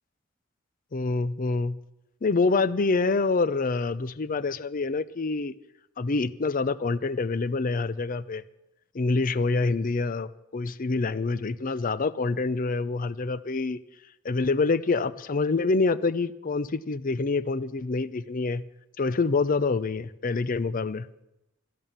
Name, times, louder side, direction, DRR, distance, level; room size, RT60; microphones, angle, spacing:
voice 1, 0.9-1.8 2.2-5.5 6.0-8.4 8.9-13.8 14.2-18.6 19.0-21.1, left 3 dB, 45° left, 17 dB, 0.5 m, -26 dB
13.0 x 10.5 x 7.3 m, 0.90 s
head